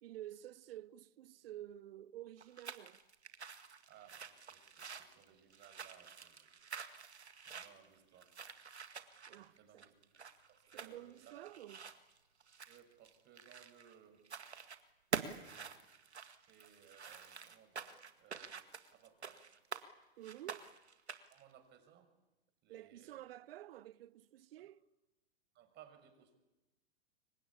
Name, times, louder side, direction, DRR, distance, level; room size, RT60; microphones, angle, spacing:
voice 1, 0.0-3.0 9.3-9.9 10.7-11.8 20.2-20.6 22.7-24.8, right 13 dB, 65° right, 0.9 m, -51 dB
sound 1, 2.4-13.9 14.2-14.8 15.1-19.9 20.2-21.4, right 6 dB, 85° right, 1.9 m, -47 dB
voice 2, 3.9-6.5 6.8-8.5 9.4-9.9 10.5-11.5 12.7-14.2 15.2-15.8 16.4-19.5 21.3-22.1 22.6-23.2 24.6-24.7 25.5-26.4, right 9 dB, 35° right, 6.1 m, -63 dB
27.0 x 24.0 x 8.6 m
hypercardioid pair, 105°, 32 cm